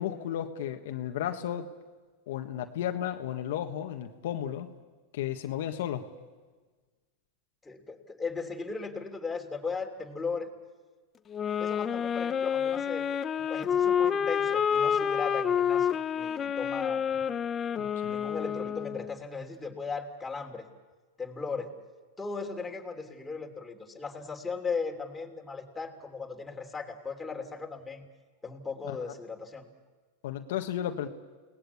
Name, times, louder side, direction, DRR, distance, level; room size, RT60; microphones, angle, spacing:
voice 1, 0.0-1.7 2.3-4.7 5.1-6.1 17.8-18.1 28.9-29.0 30.2-31.1, left 10 dB, 70° left, 5 dB, 1.5 m, -33 dB
voice 2, 7.6-10.5 11.6-13.1 13.4-17.0 18.1-20.7 21.2-21.7 22.2-28.1 28.4-29.7, left 4 dB, 10° left, 2 dB, 3.0 m, -37 dB
sound 1, 11.3-19.2, left 8 dB, 25° left, 0.8 m, -28 dB
29.0 x 19.0 x 8.5 m, 1.4 s
supercardioid pair, 125°, 0 cm